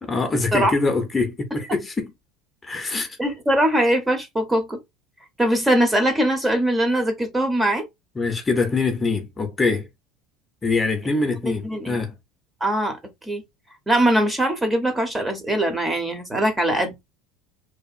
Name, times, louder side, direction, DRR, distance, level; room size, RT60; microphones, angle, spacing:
voice 1, 0.0-2.1 2.6-3.2 8.2-9.9 10.6-12.1, left 3 dB, 20° left, 0.7 m, -24 dB
voice 2, 3.2-4.8 5.4-7.8 11.4-12.0 12.6-13.0 13.2-13.4 13.9-16.9, right 1 dB, 10° right, 0.8 m, -21 dB
2.7 x 2.4 x 2.5 m
supercardioid pair, 105°, 0 cm